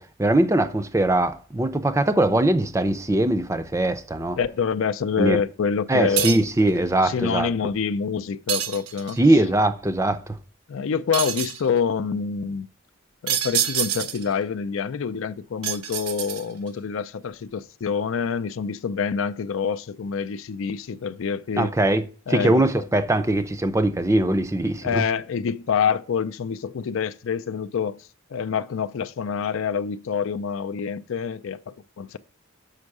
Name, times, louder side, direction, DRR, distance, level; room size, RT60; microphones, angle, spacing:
voice 1, 0.0-4.4 5.2-5.4 5.9-7.5 9.2-10.4 21.6-22.0 22.3-25.0, right 1 dB, 15° right, 0.5 m, -21 dB
voice 2, 4.4-6.3 7.0-9.2 10.7-12.7 13.2-21.7 22.3-22.9 24.8-32.2, left 6 dB, 65° left, 0.4 m, -26 dB
sound 1, 6.2-6.6 8.5-9.2 11.1-11.7 13.3-14.3 15.6-16.7, right 10 dB, 85° right, 0.9 m, -27 dB
6.4 x 5.2 x 4.7 m
head